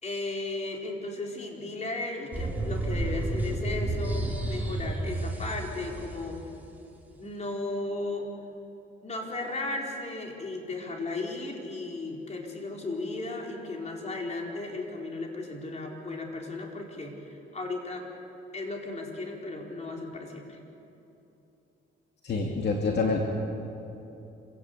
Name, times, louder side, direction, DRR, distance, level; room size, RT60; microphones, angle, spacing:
voice 1, 0.0-6.4 7.1-8.3 9.0-18.1 18.5-20.6, left 2 dB, 35° left, 0 dB, 4.6 m, -35 dB
sound 1, 2.3-6.2, right 2 dB, 10° right, 4.2 m, -31 dB
voice 2, 22.2-23.2, left 4 dB, 60° left, 0 dB, 2.6 m, -26 dB
26.5 x 17.0 x 8.3 m, 2.9 s
cardioid pair, 90°, 20 cm